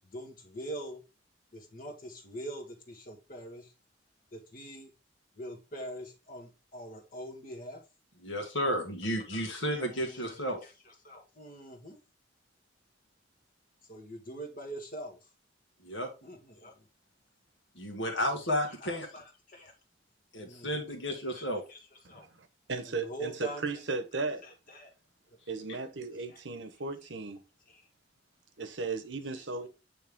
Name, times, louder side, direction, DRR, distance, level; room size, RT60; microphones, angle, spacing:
voice 1, 0.1-1.0 1.5-3.7 4.3-4.9 5.4-7.8 9.3-9.4 9.7-10.5 11.0-12.0 13.9-15.2 16.2-16.7 18.6-19.7 20.4-20.8 21.3-21.4 21.7-21.8 22.1-22.3 22.8-23.7 24.4-24.9 25.3-25.4 26.1-26.4 27.7-27.9 29.3-29.4, right 1 dB, 45° left, 1.5 m, -44 dB
voice 2, 8.2-10.6 15.8-16.1 17.7-19.1 20.3-21.6, equal, 70° left, 1.9 m, -32 dB
voice 3, 22.2-24.4 25.5-27.4 28.6-29.7, right 3 dB, 65° right, 0.9 m, -36 dB
8.9 x 3.4 x 3.6 m
head